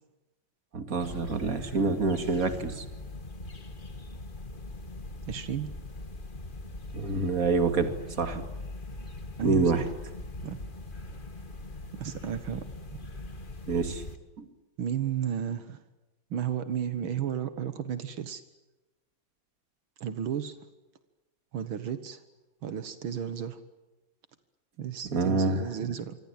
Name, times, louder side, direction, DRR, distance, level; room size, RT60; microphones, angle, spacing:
voice 1, 0.7-2.8 6.9-8.4 9.4-9.8 13.7-14.0 14.4-14.5 25.1-25.6, right 4 dB, 45° right, 8 dB, 2.7 m, -27 dB
sound 1, 1.0-14.2, left 2 dB, 25° left, 1.8 m, -41 dB
voice 2, 5.3-5.7 8.3-8.4 9.4-9.7 10.4-10.6 12.0-12.7 14.8-15.8 16.3-18.4 20.0-20.6 21.5-22.2 22.6-23.6 24.8-26.2, right 9 dB, 80° right, 11 dB, 2.2 m, -33 dB
27.0 x 24.5 x 8.9 m, 1.1 s
omnidirectional pair, 2.2 m